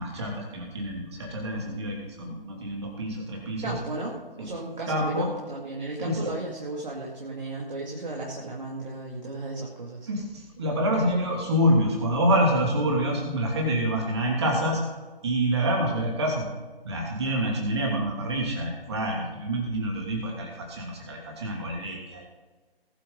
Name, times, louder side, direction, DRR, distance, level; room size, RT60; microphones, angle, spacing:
voice 1, 0.0-3.7 4.4-4.5 4.9-5.3 6.0-6.2 10.1-14.8 15.2-16.5 16.8-22.3, equal, 25° right, 0 dB, 2.9 m, -27 dB
voice 2, 3.6-10.1, right 2 dB, 50° right, -3 dB, 2.5 m, -35 dB
19.5 x 8.0 x 4.0 m, 1.3 s
figure-of-eight pair, 155°, 30 cm